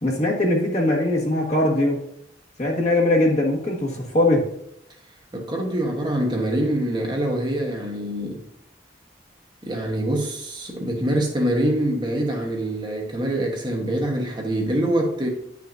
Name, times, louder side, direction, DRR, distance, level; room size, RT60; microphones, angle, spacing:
voice 1, 0.0-2.0 2.6-4.4, left 1 dB, 40° left, 1.5 m, -21 dB
voice 2, 5.3-8.4 9.6-15.3, right 1 dB, 25° right, 1.0 m, -24 dB
9.8 x 5.9 x 2.6 m
head